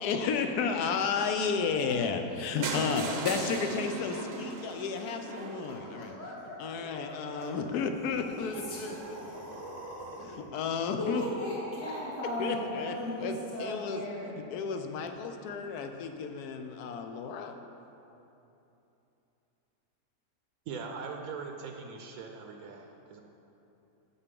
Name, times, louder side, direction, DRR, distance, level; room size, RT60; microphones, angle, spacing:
voice 1, 0.0-6.2 6.6-9.2 10.2-11.2 12.4-14.0 14.5-17.6, left 5 dB, 85° left, 6 dB, 1.1 m, -32 dB
voice 2, 2.6-3.1 5.7-6.6 6.9-7.4 8.7-9.1 11.0-14.3, left 1 dB, 55° left, -8 dB, 2.4 m, -37 dB
sound 1, 2.6-6.5 7.2-7.3 7.5-7.6 7.9-8.0 8.2-8.3, right 4 dB, 55° right, 0.8 m, -38 dB
sound 2, 7.9-10.5, right 1 dB, 20° right, 0.6 m, -44 dB
voice 3, 20.7-23.2, right 5 dB, 75° right, 3 dB, 1.0 m, -41 dB
7.0 x 6.7 x 5.2 m, 2.9 s
omnidirectional pair, 1.6 m